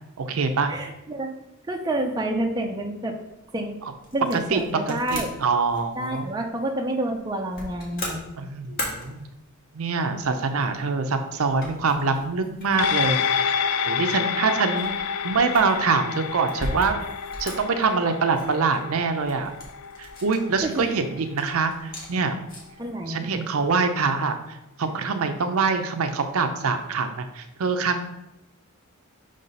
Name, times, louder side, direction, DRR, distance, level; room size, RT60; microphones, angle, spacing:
voice 1, 0.2-0.7 4.5-6.3 8.4-9.2 9.7-13.6 13.9-14.9 15.2-16.9 17.4-19.5 20.0-22.4 23.1-28.0, right 4 dB, 70° right, 7 dB, 0.5 m, -24 dB
voice 2, 0.7-1.3 1.7-3.2 3.5-3.8 4.1-5.3 6.0-8.3 20.6-21.0 22.8-23.3, right 1 dB, 15° right, 1 dB, 0.5 m, -28 dB
sound 1, 3.3-22.8, left 1 dB, 40° left, 1.6 m, -40 dB
sound 2, 12.8-21.5 21.9-22.0, left 7 dB, 85° left, 0.4 m, -28 dB
5.6 x 3.3 x 5.3 m, 0.90 s
head